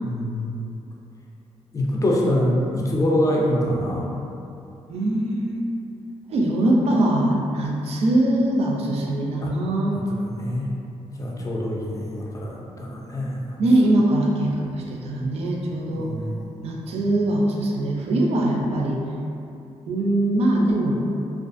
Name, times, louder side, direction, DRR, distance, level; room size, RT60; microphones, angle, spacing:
voice 1, 0.0-0.7 1.7-4.3 9.4-9.5 9.9-10.7 11.2-13.6 15.9-16.7, left 1 dB, 25° left, -3 dB, 0.4 m, -25 dB
voice 2, 4.9-5.6 6.3-10.0 13.6-16.1 16.6-19.0 19.9-21.0, right 1 dB, 60° right, -2 dB, 0.4 m, -22 dB
2.4 x 2.4 x 2.5 m, 2.7 s
cardioid pair, 105°, 12 cm